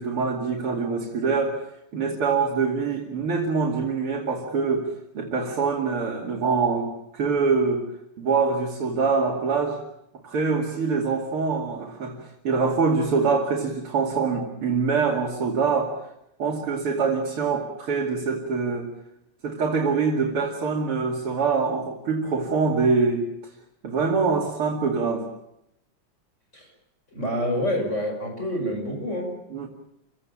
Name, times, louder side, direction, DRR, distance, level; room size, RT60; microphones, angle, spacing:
voice 1, 0.0-1.6 1.9-7.8 8.2-9.8 10.2-12.2 12.4-15.9 16.4-18.9 19.4-23.3 23.8-25.3 29.5-29.7, right 4 dB, 85° right, -1 dB, 3.5 m, -24 dB
voice 2, 27.1-29.4, equal, 30° left, 3 dB, 5.5 m, -27 dB
28.0 x 17.0 x 8.6 m, 0.80 s
omnidirectional pair, 2.4 m